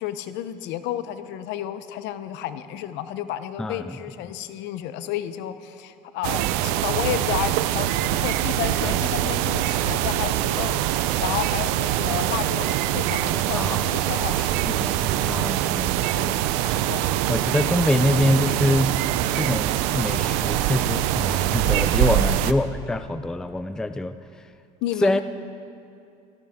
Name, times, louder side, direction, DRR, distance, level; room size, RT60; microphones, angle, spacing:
voice 1, 0.0-14.6 16.9-17.0 17.6-17.7 22.1-22.3 24.8-25.2, left 12 dB, 65° left, 12 dB, 0.9 m, -31 dB
voice 2, 3.6-4.0 8.8-9.0 12.0-12.4 13.5-13.9 14.7-16.7 17.3-18.9 19.3-24.2 25.0-25.2, left 1 dB, 5° left, 11 dB, 0.4 m, -25 dB
sound 1, 6.2-22.5, right 13 dB, 75° right, 0.6 m, -24 dB
16.5 x 14.0 x 3.7 m, 2.6 s
supercardioid pair, 105°, 20 cm